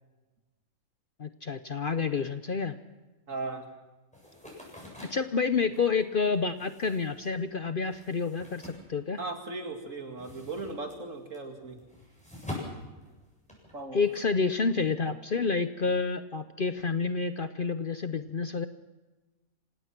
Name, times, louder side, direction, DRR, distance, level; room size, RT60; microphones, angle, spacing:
voice 1, 1.2-2.8 5.1-9.2 13.9-18.7, left 4 dB, 45° left, 10 dB, 0.8 m, -29 dB
voice 2, 3.3-3.6 9.2-11.8 13.7-14.1, right 3 dB, 65° right, 4 dB, 2.7 m, -37 dB
sound 1, 4.1-9.6 9.9-13.8, left 1 dB, 5° left, 7.5 m, -45 dB
27.0 x 17.5 x 6.0 m, 1.1 s
omnidirectional pair, 1.5 m